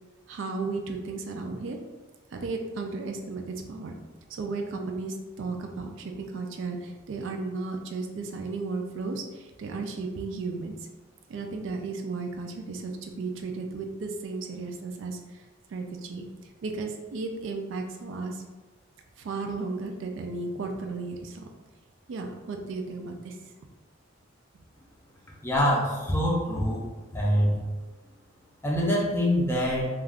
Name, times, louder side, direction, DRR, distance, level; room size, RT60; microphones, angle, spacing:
voice 1, 0.3-1.8 2.3-4.0 4.3-10.8 11.3-18.4 19.2-21.5 22.1-23.4, right 3 dB, 60° right, 3 dB, 0.3 m, -34 dB
voice 2, 25.4-26.8 27.1-27.6 28.6-29.9, equal, 10° left, -3 dB, 0.5 m, -24 dB
2.4 x 2.3 x 3.4 m, 1.2 s
head